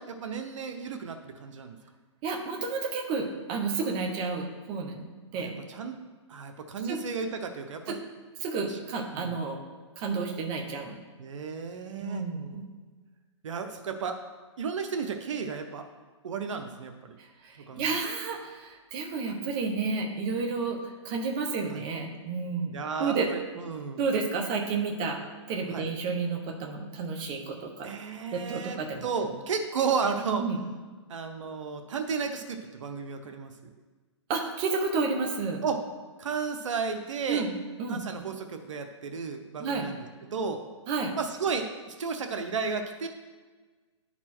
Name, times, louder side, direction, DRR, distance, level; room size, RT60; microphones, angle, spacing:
voice 1, 0.0-1.8 5.3-6.0 6.3-8.0 8.7-8.8 9.1-9.3 11.2-12.2 13.4-14.2 14.6-15.9 16.2-17.1 17.7-17.9 21.7-21.8 22.7-24.0 25.7-25.9 27.8-30.5 31.1-33.5 35.6-35.9 36.2-37.5 37.9-40.0 40.3-40.6 41.2-43.1, right 5 dB, 75° right, 6 dB, 0.8 m, -33 dB
voice 2, 2.2-5.6 6.8-7.0 8.4-9.6 10.0-11.0 12.0-12.7 17.2-23.3 24.0-25.2 25.5-27.9 28.3-29.1 30.4-30.6 34.3-35.6 37.3-37.5 37.8-38.1 39.6-39.9 40.9-41.1, right 4 dB, 30° right, 2 dB, 1.1 m, -31 dB
10.5 x 4.3 x 4.4 m, 1.4 s
hypercardioid pair, 150°, 16 cm